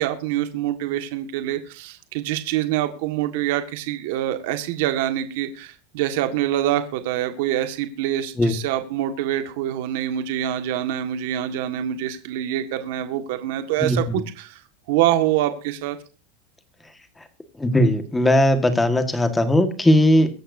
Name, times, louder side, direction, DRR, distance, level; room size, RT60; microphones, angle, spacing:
voice 1, 0.0-14.6 14.9-16.0, right 12 dB, 60° right, 8 dB, 1.6 m, -25 dB
voice 2, 13.8-14.2 17.6-20.3, left 1 dB, 5° left, 8 dB, 1.5 m, -18 dB
23.0 x 11.5 x 2.6 m, 0.35 s
supercardioid pair, 170°, 0 cm